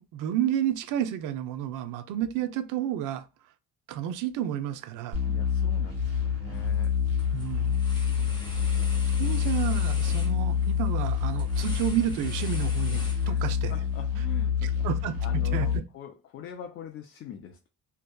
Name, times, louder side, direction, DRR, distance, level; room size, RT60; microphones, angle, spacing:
voice 1, 0.0-3.3 3.9-5.2 7.3-7.8 9.2-13.7 14.6-15.7, right 10 dB, 70° right, 0.5 m, -31 dB
sound 1, 5.1-15.8, left 7 dB, 45° right, 1.3 m, -27 dB
voice 2, 5.3-7.0 8.2-8.8 13.2-13.4 13.7-14.9 15.2-17.7, left 9 dB, 45° left, 0.4 m, -43 dB
sound 2, 6.5-6.9 7.2-13.7, left 1 dB, 15° left, 0.8 m, -44 dB
2.7 x 2.2 x 2.2 m
cardioid pair, 115°, 33 cm